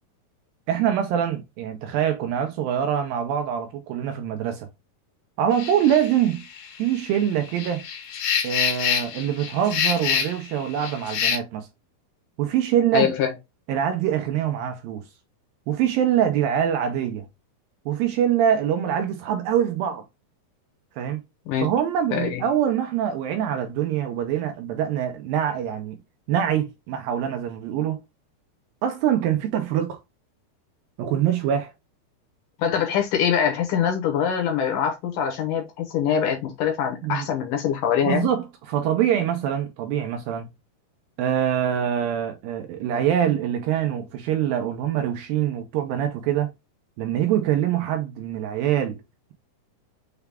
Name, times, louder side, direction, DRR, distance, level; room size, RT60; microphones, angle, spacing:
voice 1, 0.7-4.7 5.4-6.5 6.8-7.8 8.4-11.7 12.4-13.1 13.7-15.0 15.7-17.3 17.9-20.0 21.0-21.2 21.6-26.0 26.3-28.0 28.8-30.0 31.0-31.7 37.0-37.3 38.1-40.5 41.2-46.5 47.0-49.0, right 10 dB, 80° right, 2.1 m, -24 dB
sound 1, 5.5-11.4, left 8 dB, 90° left, 3.2 m, -27 dB
voice 2, 12.9-13.3 21.5-21.7 22.1-22.4 32.6-38.3, left 8 dB, 70° left, 2.1 m, -24 dB
6.7 x 2.3 x 3.3 m
omnidirectional pair, 4.6 m